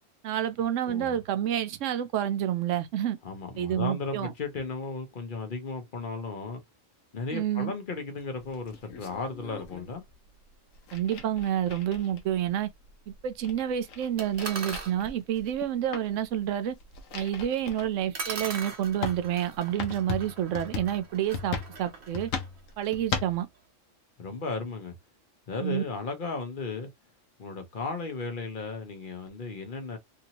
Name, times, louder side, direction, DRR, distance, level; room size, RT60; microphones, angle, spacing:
voice 1, 0.2-3.2 3.6-4.3 7.3-7.7 10.9-12.7 13.2-16.8 17.1-22.3 22.8-23.5 25.6-25.8, right 10 dB, 75° right, 0.9 m, -29 dB
voice 2, 0.9-1.2 3.2-6.6 7.1-10.0 24.2-24.9 25.5-26.9 27.4-30.0, left 4 dB, 45° left, 0.9 m, -35 dB
sound 1, 8.4-9.9 10.7-12.4 12.8-12.9 13.2-15.7 15.9-16.2 16.7-17.9 18.5-18.6 19.0-23.4, left 6 dB, 90° left, 1.1 m, -37 dB
sound 2, 14.2-15.0 17.6-17.7 18.1-23.0, right 4 dB, 55° right, 1.2 m, -40 dB
2.9 x 2.7 x 2.8 m
omnidirectional pair, 1.3 m